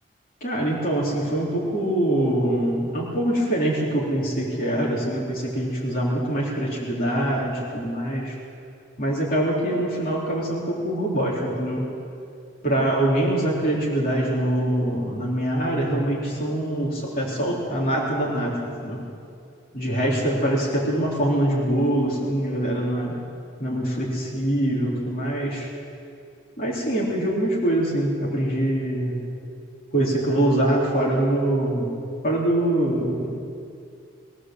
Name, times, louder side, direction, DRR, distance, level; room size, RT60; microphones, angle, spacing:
voice 1, 0.4-8.4 9.0-11.9 12.6-19.0 19.7-23.2 23.6-25.7 26.6-29.2 29.9-32.0 32.2-33.3, right 1 dB, 45° left, -5 dB, 3.6 m, -24 dB
22.5 x 15.5 x 7.6 m, 2.5 s
head